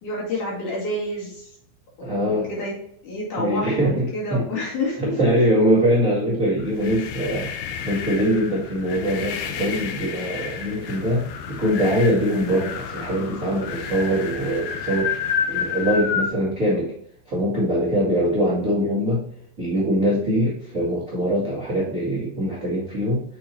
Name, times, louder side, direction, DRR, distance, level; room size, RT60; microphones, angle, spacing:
voice 1, 0.0-1.5 2.0-2.8 3.0-5.2, left 1 dB, 50° left, -5 dB, 3.1 m, -29 dB
voice 2, 2.0-2.5 3.4-4.4 5.0-7.5 7.8-15.2 15.5-16.9 17.2-19.2 19.6-23.2, equal, 55° right, -7 dB, 0.8 m, -22 dB
sound 1, 6.5-16.3, left 7 dB, 80° left, 2.4 m, -30 dB
6.8 x 6.3 x 2.7 m, 0.69 s
omnidirectional pair, 5.2 m